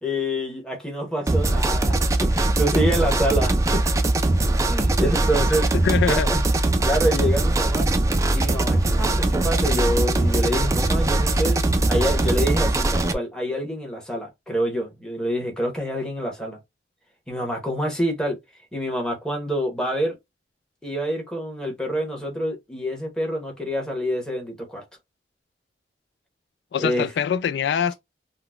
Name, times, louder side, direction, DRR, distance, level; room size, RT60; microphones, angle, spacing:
voice 1, 0.0-2.0 2.3-3.8 4.6-5.7 6.0-6.4 6.8-7.9 8.3-11.6 11.9-16.6 17.3-18.4 18.7-20.2 20.8-24.8 26.8-27.1, equal, 5° left, 1.0 m, -26 dB
sound 1, 1.3-13.1, right 2 dB, 20° right, 0.3 m, -21 dB
voice 2, 5.8-6.3 26.7-27.9, left 7 dB, 75° left, 0.3 m, -23 dB
3.8 x 2.1 x 2.3 m
head